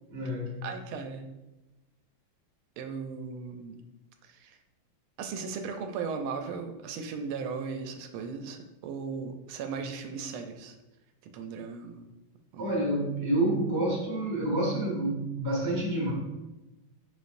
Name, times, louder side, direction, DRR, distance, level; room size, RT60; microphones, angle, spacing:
voice 1, 0.1-0.6 12.6-16.1, right 1 dB, 20° right, -3 dB, 0.9 m, -28 dB
voice 2, 0.6-1.3 2.8-3.8 4.2-4.6 5.2-10.8 11.2-12.1 12.5-12.8, right 5 dB, 90° right, 6 dB, 1.4 m, -37 dB
5.1 x 4.2 x 2.5 m, 1.0 s
omnidirectional pair, 2.3 m